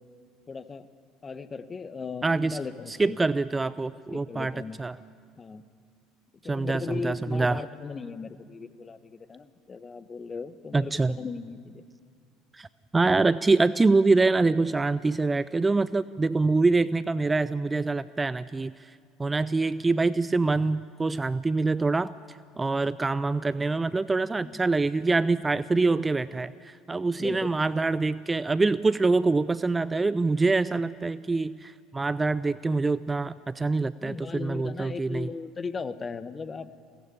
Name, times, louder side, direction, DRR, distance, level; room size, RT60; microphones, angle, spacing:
voice 1, 0.5-0.9 1.2-3.3 4.1-4.8 5.4-5.6 6.4-10.9 11.2-11.8 24.4-24.6 27.2-27.5 34.0-36.7, left 4 dB, 25° left, 14 dB, 1.1 m, -37 dB
voice 2, 2.2-2.6 2.9-4.5 4.8-5.0 6.5-7.6 10.7-11.2 12.5-12.7 12.9-18.9 19.2-22.1 22.6-35.3, right 3 dB, 15° right, 17 dB, 0.5 m, -25 dB
21.5 x 17.5 x 8.6 m, 2.1 s
figure-of-eight pair, 65°, 0 cm